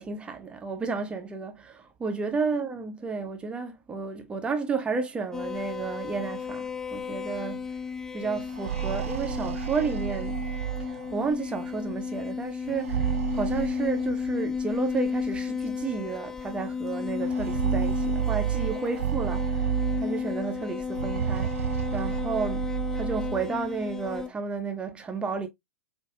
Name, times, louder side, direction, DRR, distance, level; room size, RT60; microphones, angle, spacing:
voice 1, 0.0-7.8 8.1-10.4 10.8-25.5, right 5 dB, 15° right, 0.7 m, -32 dB
sound 1, 5.3-24.3, left 6 dB, 5° left, 0.3 m, -33 dB
sound 2, 8.4-11.3 12.7-14.4 15.4-15.5 15.8-15.9 17.2-20.3 20.9-23.5, right 11 dB, 60° right, 0.5 m, -31 dB
7.4 x 2.6 x 2.2 m
figure-of-eight pair, 100°, 8 cm